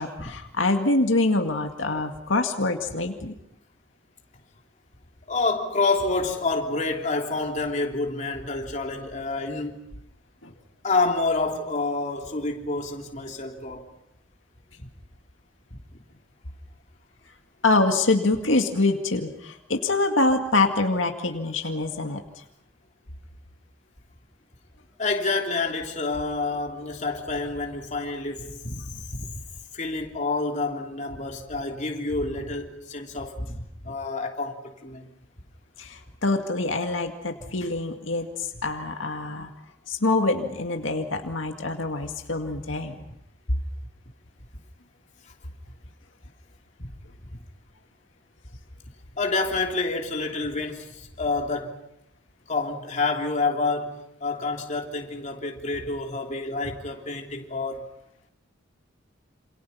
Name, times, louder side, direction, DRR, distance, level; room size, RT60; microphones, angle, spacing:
voice 1, 0.0-3.3 10.4-10.5 17.6-22.2 35.8-39.5 39.9-43.0, left 2 dB, 85° left, 2.1 m, -25 dB
voice 2, 5.3-9.8 10.8-13.9 14.8-14.9 15.7-15.8 25.0-29.3 29.7-35.1 46.8-46.9 49.2-51.8 52.5-57.9, left 3 dB, 40° left, 3.2 m, -28 dB
28.0 x 27.5 x 5.7 m
head